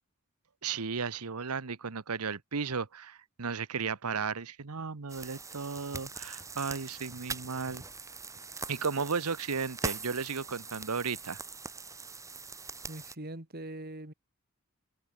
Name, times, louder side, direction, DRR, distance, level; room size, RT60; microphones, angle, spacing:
voice 1, 0.6-7.8 8.7-11.4, right 5 dB, 90° right, 1.0 m, -34 dB
sound 1, 5.1-13.2, right 3 dB, 15° right, 5.9 m, -42 dB
voice 2, 12.9-14.1, right 1 dB, 45° right, 2.3 m, -42 dB
head